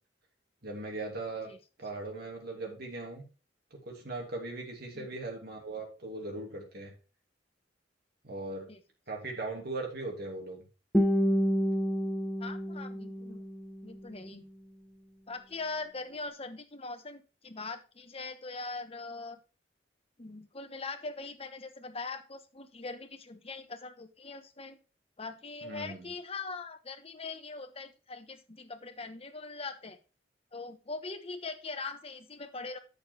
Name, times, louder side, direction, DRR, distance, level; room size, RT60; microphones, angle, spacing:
voice 1, 0.6-1.5 1.8-3.3 3.7-6.9 8.2-8.7 9.1-10.6 25.6-26.1, right 2 dB, 60° right, 1 dB, 2.7 m, -39 dB
Guitar, 10.9-14.0, equal, 5° left, 1.1 m, -29 dB
voice 2, 12.4-13.5 13.8-14.5 15.3-19.4 20.2-24.8 25.2-30.0 30.5-32.8, left 3 dB, 35° left, 8 dB, 1.1 m, -41 dB
8.6 x 6.6 x 4.5 m, 0.32 s
head